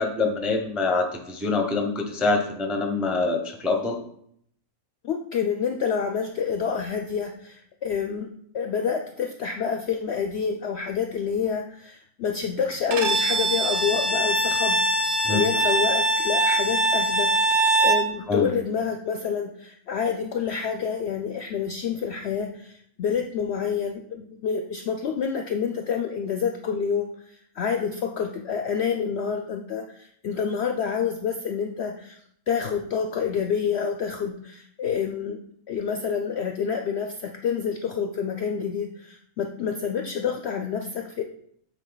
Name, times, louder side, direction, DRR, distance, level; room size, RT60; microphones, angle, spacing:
voice 1, 0.0-4.0 15.2-15.4 18.3-18.5, left 3 dB, ahead, 3 dB, 0.4 m, -25 dB
voice 2, 5.0-8.3 8.5-17.3 17.8-32.2 32.5-35.4 35.7-41.2, left 6 dB, 70° left, 5 dB, 0.6 m, -28 dB
Bowed string instrument, 12.9-18.1, right 2 dB, 55° right, 1.0 m, -22 dB
8.3 x 4.0 x 3.9 m, 0.67 s
omnidirectional pair, 1.6 m